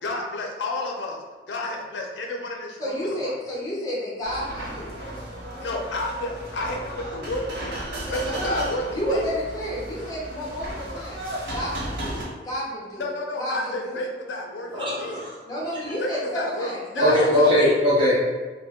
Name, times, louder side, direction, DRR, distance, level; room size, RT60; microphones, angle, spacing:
voice 1, 0.0-3.4 5.6-7.8 8.1-9.3 13.0-15.3 16.0-17.5, left 1 dB, 85° left, 1 dB, 0.5 m, -31 dB
voice 2, 2.8-4.9 8.0-8.7 8.9-11.2 11.5-13.1 13.4-14.0 15.5-17.6, equal, 20° left, -7 dB, 0.9 m, -31 dB
sound 1, 4.2-12.2, right 1 dB, 80° right, 0.9 m, -34 dB
voice 3, 14.7-15.2 17.0-18.1, left 1 dB, 30° right, -7 dB, 0.9 m, -19 dB
2.6 x 2.1 x 3.5 m, 1.3 s
head